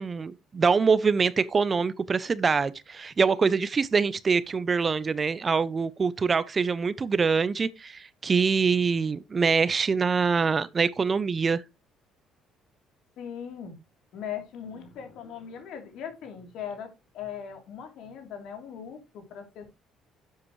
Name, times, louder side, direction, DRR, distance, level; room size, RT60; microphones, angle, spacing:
voice 1, 0.0-11.6, right 5 dB, 25° right, 0.4 m, -24 dB
voice 2, 13.2-13.8 14.1-19.7, left 8 dB, 65° left, 3.1 m, -39 dB
11.5 x 7.8 x 3.1 m
cardioid pair, 160°, 0 cm